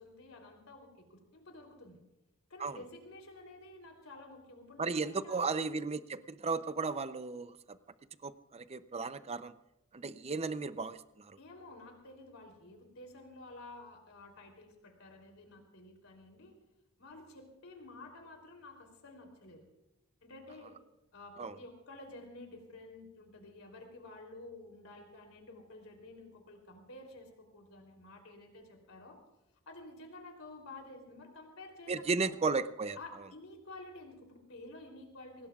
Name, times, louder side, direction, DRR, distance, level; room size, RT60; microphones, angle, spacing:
voice 1, 0.0-2.0 2.5-5.4 11.4-16.5 17.0-19.6 20.2-20.8 21.1-29.2 29.7-32.3 32.9-35.5, left 2 dB, 75° left, 3 dB, 3.3 m, -51 dB
voice 2, 4.8-7.8 8.2-9.5 9.9-11.4 21.4-21.5 31.9-33.0, right 4 dB, 30° right, 13 dB, 0.5 m, -35 dB
24.0 x 19.0 x 2.4 m, 0.92 s
head